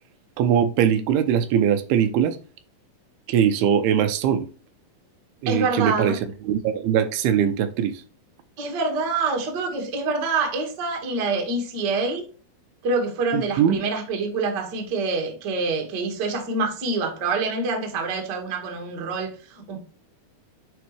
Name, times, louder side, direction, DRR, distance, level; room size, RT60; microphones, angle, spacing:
voice 1, 0.4-2.4 3.3-4.5 5.4-8.0 13.3-13.8, right 9 dB, 85° right, 2.6 m, -21 dB
voice 2, 5.5-6.2 8.6-12.2 12.8-19.8, right 3 dB, 50° right, 1.3 m, -26 dB
9.3 x 3.8 x 3.1 m
omnidirectional pair, 4.4 m